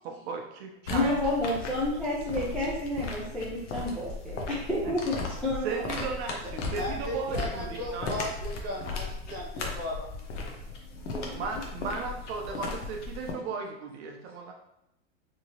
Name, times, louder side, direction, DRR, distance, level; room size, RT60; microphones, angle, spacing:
voice 1, 0.0-1.1 5.6-8.2 11.0-14.5, right 5 dB, 60° right, 2 dB, 0.6 m, -36 dB
sound 1, 0.8-13.3, left 3 dB, 80° left, 1.0 m, -36 dB
voice 2, 0.9-5.8 11.1-11.6, left 1 dB, 5° left, -8 dB, 0.4 m, -30 dB
voice 3, 6.7-10.1, equal, 25° right, -4 dB, 1.2 m, -36 dB
3.6 x 2.8 x 2.8 m, 0.82 s
supercardioid pair, 140°, 36 cm